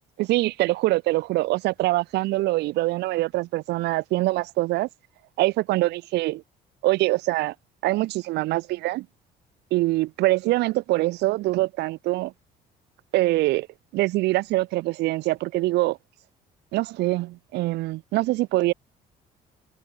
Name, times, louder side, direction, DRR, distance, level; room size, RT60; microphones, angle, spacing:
voice 1, 0.2-4.9 5.4-6.4 6.8-7.5 7.8-9.1 9.7-12.3 13.1-13.7 13.9-16.0 16.7-18.7, right 19 dB, 85° right, 1.8 m, -24 dB
cardioid pair, 110°, 17 cm